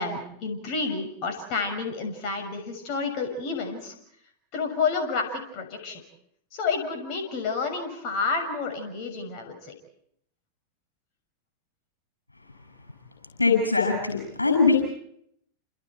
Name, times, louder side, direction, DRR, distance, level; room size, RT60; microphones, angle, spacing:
voice 1, 0.0-3.9 4.5-6.0 6.5-9.7, left 4 dB, 40° left, 5 dB, 6.4 m, -30 dB
voice 2, 13.4-14.8, left 4 dB, 80° left, 3 dB, 6.7 m, -21 dB
29.5 x 28.0 x 4.6 m, 0.70 s
figure-of-eight pair, 90°, 0 cm